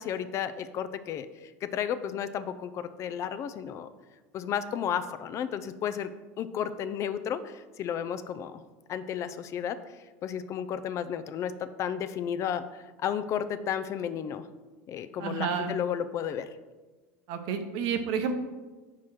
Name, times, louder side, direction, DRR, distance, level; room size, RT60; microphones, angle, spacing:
voice 1, 0.0-3.9 4.3-6.1 6.4-8.6 8.9-14.5 14.9-16.5, left 8 dB, 45° left, 12 dB, 0.4 m, -33 dB
voice 2, 15.2-15.7 17.3-18.3, right 6 dB, 65° right, 7 dB, 0.8 m, -30 dB
4.7 x 4.7 x 5.8 m, 1.2 s
supercardioid pair, 105°, 7 cm